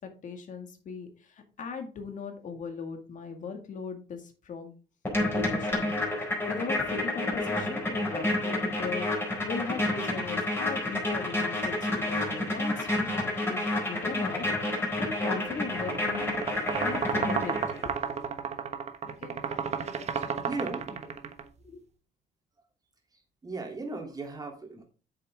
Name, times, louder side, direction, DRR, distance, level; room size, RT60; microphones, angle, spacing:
voice 1, 0.2-4.7 5.3-18.1 19.0-20.5 21.6-21.8, left 5 dB, 50° left, 5 dB, 2.1 m, -39 dB
sound 1, 5.0-17.8, left 1 dB, 15° left, 4.3 m, -30 dB
sound 2, 15.7-21.4, right 6 dB, 40° right, 1.2 m, -32 dB
voice 2, 20.4-21.0 23.4-24.8, right 3 dB, 20° right, 2 dB, 3.1 m, -37 dB
8.6 x 6.7 x 3.7 m, 0.36 s
cardioid pair, 110°, 17 cm